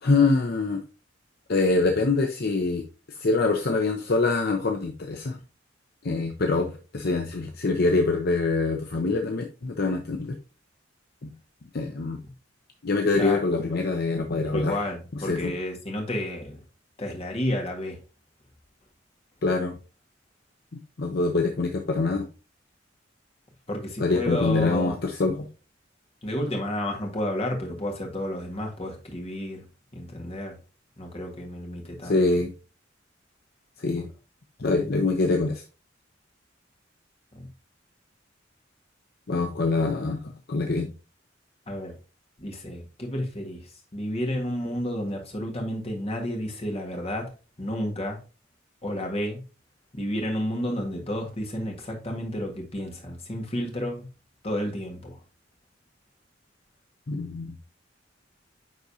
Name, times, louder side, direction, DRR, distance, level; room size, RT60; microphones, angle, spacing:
voice 1, 0.0-0.8 1.5-2.8 3.2-5.4 6.0-10.4 11.2-11.3 11.7-12.2 12.8-14.7 15.3-15.5 19.4-19.8 20.7-22.3 24.0-25.5 32.0-32.5 33.8-34.1 34.6-35.6 39.3-40.9 57.1-57.6, left 3 dB, 55° left, 0.6 m, -24 dB
voice 2, 14.5-16.6 17.0-18.0 23.7-25.0 26.2-29.6 29.9-30.6 31.0-32.3 37.3-37.5 41.7-41.9 42.4-47.3 47.6-48.2 48.8-49.4 49.9-54.1 54.4-55.2, left 1 dB, 30° left, 1.7 m, -31 dB
9.5 x 3.9 x 2.7 m
head